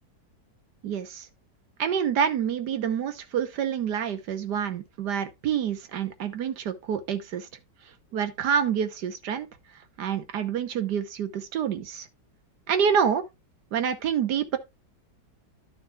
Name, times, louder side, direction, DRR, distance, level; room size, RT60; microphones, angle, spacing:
voice 1, 0.8-1.3 1.8-7.5 8.1-9.5 10.0-12.1 12.7-13.2 13.7-14.6, right 8 dB, 75° right, 1.5 m, -27 dB
11.5 x 6.5 x 2.4 m
omnidirectional pair, 1.9 m